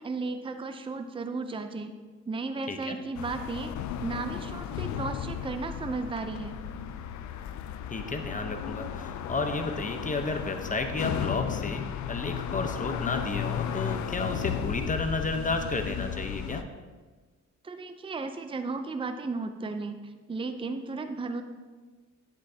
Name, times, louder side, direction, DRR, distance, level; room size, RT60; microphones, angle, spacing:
voice 1, 0.0-1.9 2.3-6.5 17.6-21.4, right 3 dB, 15° right, 8 dB, 0.6 m, -34 dB
sound 1, 3.1-16.6, left 9 dB, 70° left, 0.6 m, -34 dB
voice 2, 7.9-16.6, left 3 dB, 25° left, 5 dB, 1.0 m, -32 dB
10.0 x 10.0 x 2.8 m, 1.4 s
cardioid pair, 90°, 30 cm